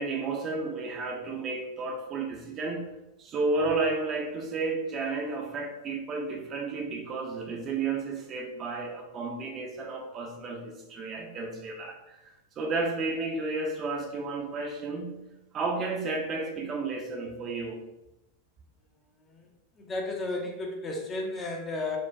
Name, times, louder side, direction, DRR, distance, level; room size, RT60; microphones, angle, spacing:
voice 1, 0.0-12.2 12.6-15.2 15.5-17.8, right 3 dB, 30° right, 1 dB, 0.5 m, -32 dB
voice 2, 19.8-22.0, left 2 dB, 20° left, 1 dB, 0.6 m, -33 dB
4.4 x 2.2 x 2.6 m, 0.93 s
figure-of-eight pair, 90°, 0 cm